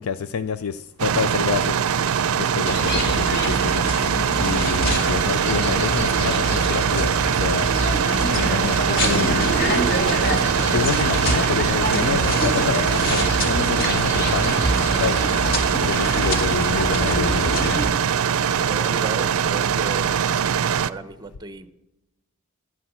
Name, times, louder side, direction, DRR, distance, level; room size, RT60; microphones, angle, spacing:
voice 1, 0.0-3.9 4.4-7.8 8.3-9.6 10.7-12.8 13.1-15.2 15.8-17.8, left 6 dB, 85° left, 0.4 m, -28 dB
sound 1, 1.0-20.9, right 7 dB, 75° right, 0.5 m, -22 dB
sound 2, 2.6-17.9, equal, 45° left, 2.2 m, -25 dB
voice 2, 18.6-20.2 20.8-21.7, right 4 dB, 20° right, 0.8 m, -34 dB
11.0 x 10.0 x 7.8 m
head